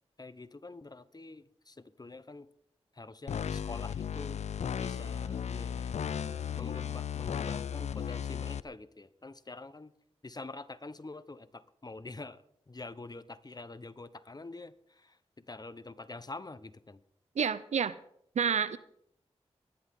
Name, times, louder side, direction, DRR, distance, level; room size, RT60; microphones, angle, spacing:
voice 1, 0.2-2.5 2.9-4.4 4.8-9.9 10.2-15.2 15.5-17.0, left 3 dB, 35° left, 13 dB, 1.1 m, -46 dB
sound 1, 3.3-8.6, left 8 dB, 75° left, 0.5 m, -35 dB
voice 2, 17.4-18.0 18.4-18.8, right 7 dB, 85° right, 16 dB, 0.7 m, -29 dB
22.5 x 11.0 x 3.8 m, 0.69 s
cardioid pair, 45°, 11 cm